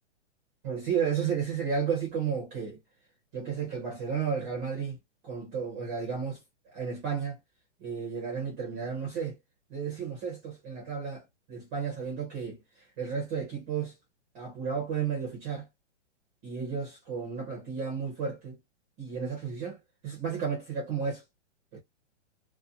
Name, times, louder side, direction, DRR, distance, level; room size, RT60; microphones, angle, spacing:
voice 1, 0.6-2.8 3.3-5.0 5.2-7.4 7.8-9.4 9.7-12.6 13.0-13.9 14.3-15.7 16.4-18.6 19.0-19.8 20.0-21.2 21.7-21.8, right 6 dB, 15° right, 0.5 m, -33 dB
2.5 x 2.1 x 2.6 m
hypercardioid pair, 160°, 36 cm